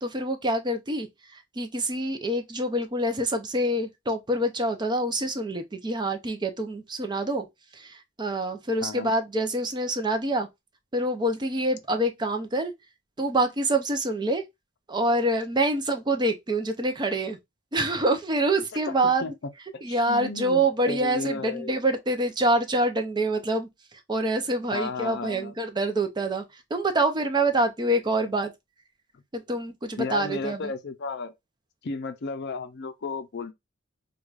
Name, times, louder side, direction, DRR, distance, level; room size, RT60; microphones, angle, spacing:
voice 1, 0.0-1.1 1.3-7.5 7.7-10.5 10.9-12.7 13.2-14.4 14.9-17.4 17.7-19.3 19.8-23.7 24.1-26.4 26.7-28.5 29.3-30.7, right 1 dB, 20° right, 0.5 m, -26 dB
voice 2, 8.8-9.1 18.7-19.3 19.9-21.8 24.7-25.5 30.0-31.3 31.8-33.5, left 4 dB, 55° left, 0.5 m, -34 dB
4.6 x 2.3 x 2.4 m
head